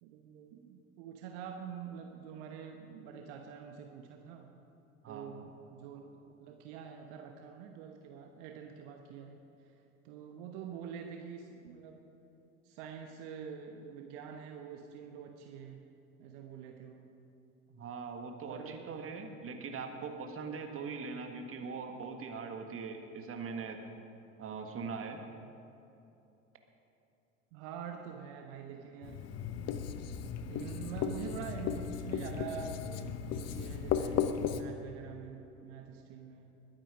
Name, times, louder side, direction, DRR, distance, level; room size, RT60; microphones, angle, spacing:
voice 1, 0.0-4.5 5.1-6.1 6.4-9.7 10.0-12.0 12.6-15.9 16.2-17.1 18.5-18.8 19.5-19.6 27.5-29.2 30.5-36.5, right 7 dB, 60° right, 3 dB, 1.1 m, -46 dB
voice 2, 5.0-5.3 17.7-23.9 24.4-25.2, right 5 dB, 35° right, 5 dB, 1.7 m, -41 dB
Writing, 29.0-34.6, left 8 dB, 40° left, 0.9 m, -35 dB
21.0 x 9.2 x 5.1 m, 2.8 s
figure-of-eight pair, 70°, 40 cm